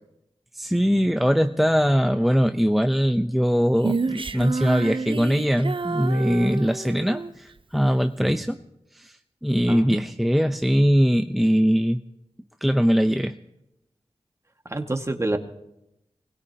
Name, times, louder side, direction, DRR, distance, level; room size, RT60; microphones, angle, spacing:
voice 1, 0.5-8.6 8.9-12.0 12.6-13.4, equal, ahead, 7 dB, 0.7 m, -21 dB
Female singing, 3.8-7.3, right 4 dB, 50° right, 0.7 m, -29 dB
voice 2, 9.7-10.0 14.7-15.4, right 2 dB, 25° right, 5 dB, 1.9 m, -27 dB
24.0 x 20.5 x 2.9 m, 0.89 s
cardioid pair, 40°, 11 cm